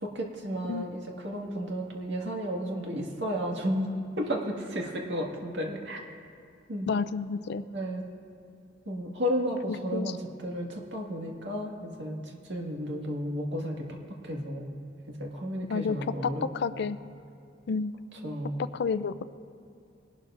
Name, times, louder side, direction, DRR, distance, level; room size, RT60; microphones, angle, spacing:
voice 1, 0.0-3.9 4.2-6.0 6.7-6.9 7.7-8.0 8.9-14.0 14.2-14.8 15.1-16.4 16.7-16.9 18.2-18.6, equal, 65° right, 0 dB, 1.8 m, -33 dB
voice 2, 6.9-7.6 9.9-10.2 15.7-17.0 17.7-17.9 18.6-19.2, left 5 dB, 60° left, 14 dB, 0.4 m, -30 dB
21.5 x 12.0 x 2.5 m, 2.5 s
head